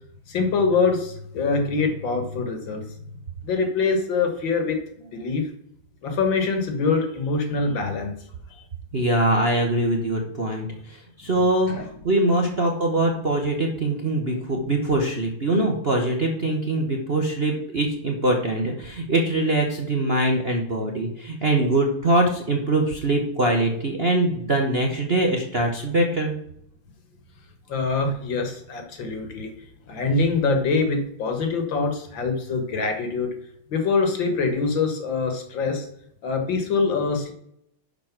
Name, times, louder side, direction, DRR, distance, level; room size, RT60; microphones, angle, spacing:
voice 1, 0.3-2.9 3.4-5.5 6.0-8.1 8.5-8.6 11.7-11.9 27.7-29.5 29.9-33.3 33.7-35.9 36.2-37.3, left 4 dB, 60° left, 6 dB, 2.1 m, -24 dB
voice 2, 8.9-26.3, right 1 dB, 35° right, 0 dB, 1.0 m, -23 dB
11.0 x 4.9 x 5.9 m, 0.71 s
omnidirectional pair, 2.4 m